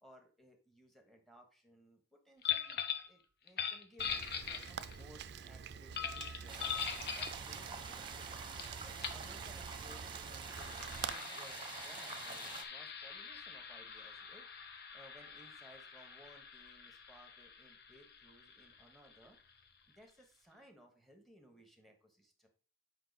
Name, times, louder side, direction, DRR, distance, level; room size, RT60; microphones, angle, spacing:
voice 1, 0.0-6.8 7.1-8.3 8.8-19.4 19.9-22.5, equal, ahead, 4 dB, 1.3 m, -61 dB
sound 1, 2.4-3.1 3.5-5.0 5.9-7.4 8.6-8.7 9.0-9.2 10.3-19.6, left 7 dB, 60° left, 0.8 m, -42 dB
Rain, 4.0-11.1, right 7 dB, 60° right, 0.4 m, -47 dB
sound 2, 6.5-12.6, right 5 dB, 25° right, 0.8 m, -47 dB
7.8 x 5.2 x 4.1 m, 0.39 s
head